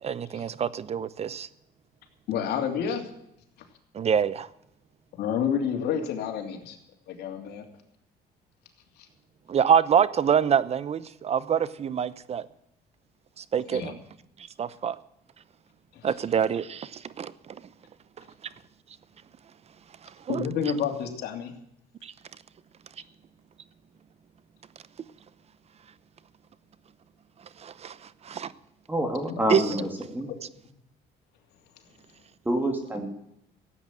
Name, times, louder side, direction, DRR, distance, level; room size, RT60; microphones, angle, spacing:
voice 1, 0.0-1.5 3.9-4.5 9.5-12.5 13.4-14.0 14.6-15.0 16.0-17.3 20.3-20.4 22.0-22.1 27.6-28.0 28.2-28.5 29.5-29.7, right 8 dB, 40° right, 0.8 m, -25 dB
voice 2, 2.3-3.0 5.1-6.8 7.1-7.6 13.7-13.9 15.9-16.1 20.3-21.5 29.3-29.4, left 7 dB, 75° left, 2.9 m, -29 dB
voice 3, 28.9-30.3 32.5-33.1, equal, 10° right, 2.5 m, -27 dB
15.5 x 8.7 x 7.4 m
cardioid pair, 110°, 17 cm